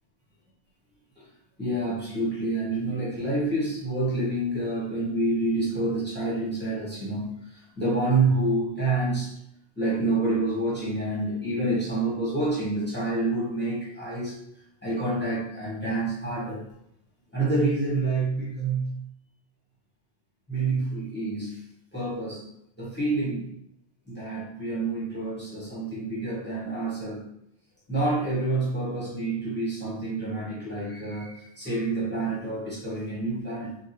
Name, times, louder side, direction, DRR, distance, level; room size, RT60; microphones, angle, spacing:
voice 1, 1.6-9.3 9.8-14.4 14.8-16.6 17.3-19.0 20.5-21.6 21.9-22.5 22.8-23.5 24.1-27.3 27.9-33.8, right 2 dB, 10° left, -8 dB, 1.0 m, -28 dB
3.9 x 2.3 x 2.8 m, 0.75 s
omnidirectional pair, 1.2 m